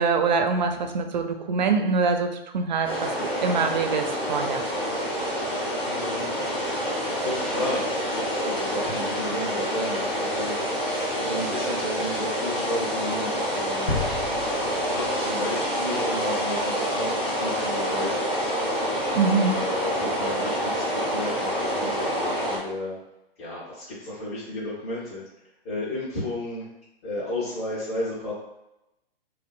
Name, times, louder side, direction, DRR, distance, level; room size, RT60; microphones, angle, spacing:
voice 1, 0.0-2.3 2.5-3.1 3.4-4.6 19.1-19.5, right 4 dB, 45° right, 6 dB, 0.4 m, -24 dB
sound 1, 2.8-22.6, equal, 5° left, 0.5 m, -27 dB
voice 2, 5.8-6.4 7.2-14.0 14.8-18.5 19.5-23.0 23.4-25.2 25.6-26.7 27.0-28.3, left 1 dB, 40° left, -10 dB, 1.3 m, -33 dB
sound 2, 13.9-15.9, left 4 dB, 80° left, 0.7 m, -33 dB
3.0 x 2.5 x 2.3 m, 0.89 s
figure-of-eight pair, 120°, 31 cm